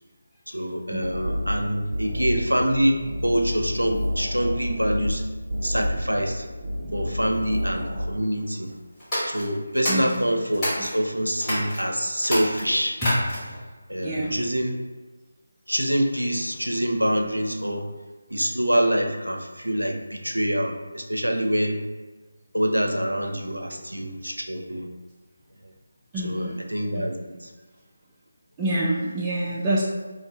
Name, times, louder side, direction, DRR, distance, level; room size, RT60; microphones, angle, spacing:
voice 1, 0.5-5.2 5.6-6.5 6.9-8.8 9.3-13.0 13.9-14.7 15.7-17.9 18.3-21.8 22.5-24.9 26.2-27.5, equal, 90° right, 3 dB, 0.5 m, -25 dB
sound 1, 0.9-8.0, equal, 45° right, 0.8 m, -30 dB
sound 2, 9.0-11.0 11.4-11.8 12.2-13.6, equal, 15° left, 1.5 m, -28 dB
voice 2, 9.9-10.2 10.8-10.9 13.0-13.1 13.4-13.6 14.0-14.4 23.7-23.8 26.1-26.6 26.9-27.1 28.6-29.8, right 1 dB, 10° right, -7 dB, 0.4 m, -27 dB
2.5 x 2.5 x 3.3 m, 1.3 s
figure-of-eight pair, 160°, 0 cm